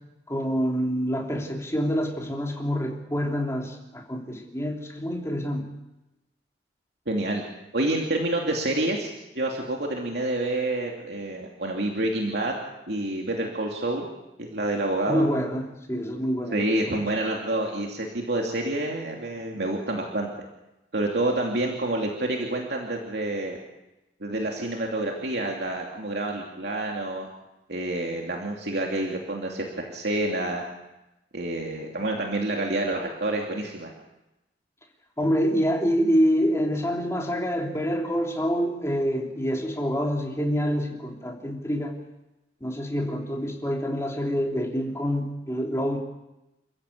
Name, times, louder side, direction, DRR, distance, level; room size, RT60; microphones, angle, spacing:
voice 1, 0.3-5.7 15.1-17.0 35.2-42.0 42.6-46.0, equal, 15° left, 1 dB, 3.1 m, -26 dB
voice 2, 7.1-7.4 7.7-12.5 12.9-14.1 14.4-15.3 16.5-20.3 20.9-23.6 24.2-27.3 27.7-30.6 31.3-33.9, right 1 dB, 65° right, 0 dB, 2.8 m, -28 dB
28.5 x 15.0 x 8.5 m, 0.98 s
head